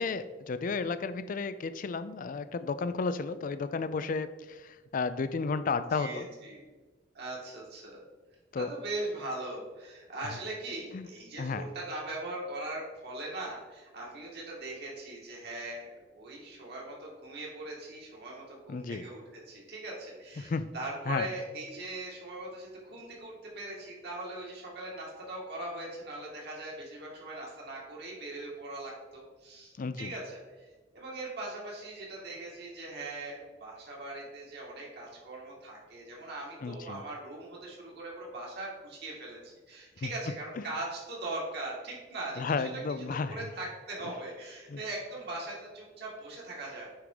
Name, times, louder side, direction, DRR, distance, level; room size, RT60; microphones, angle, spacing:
voice 1, 0.0-6.3 8.5-8.7 10.9-11.1 11.4-11.6 18.7-19.0 20.4-20.7 21.1-21.3 29.8-30.1 36.6-37.0 40.0-40.1 42.4-43.4 44.0-44.1 44.7-44.8, left 4 dB, 45° left, 13 dB, 0.4 m, -33 dB
voice 2, 5.9-6.6 7.1-8.0 8.5-39.4 39.7-46.9, right 2 dB, 60° right, -3 dB, 2.2 m, -40 dB
8.9 x 3.5 x 4.8 m, 1.3 s
head